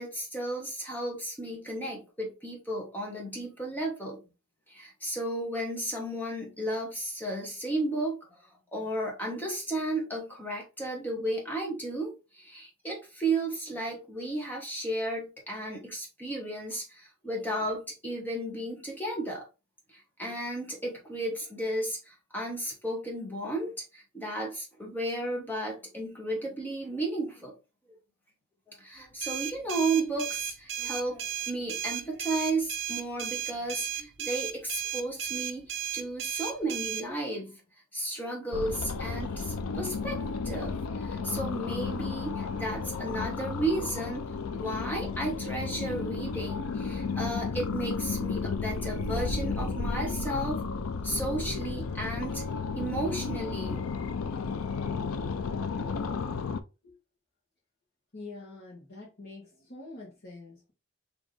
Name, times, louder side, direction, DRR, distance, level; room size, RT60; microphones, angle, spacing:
voice 1, 0.0-4.2 4.7-8.4 8.7-19.5 19.9-27.5 28.7-37.6 37.9-44.2 44.5-50.6 51.0-52.4 52.8-53.8, right 1 dB, 10° left, 1.1 m, -33 dB
sound 1, 29.2-37.0, right 10 dB, 55° right, 0.6 m, -35 dB
sound 2, 38.5-56.6, left 4 dB, 85° left, 0.4 m, -33 dB
voice 2, 58.1-60.7, left 2 dB, 50° left, 1.2 m, -46 dB
4.2 x 2.8 x 3.2 m
head